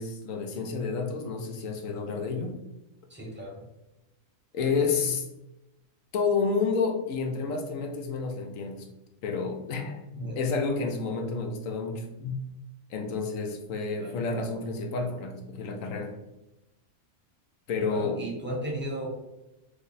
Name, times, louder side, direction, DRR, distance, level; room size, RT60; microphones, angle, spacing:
voice 1, 0.0-2.5 4.5-5.3 6.1-8.9 9.2-12.4 12.9-16.1 17.7-18.2, left 4 dB, 85° left, 4 dB, 1.0 m, -30 dB
voice 2, 3.1-3.6 10.1-10.4 13.9-14.1 17.9-19.1, right 1 dB, 10° right, -4 dB, 0.6 m, -35 dB
3.3 x 2.0 x 3.9 m, 0.95 s
omnidirectional pair, 1.3 m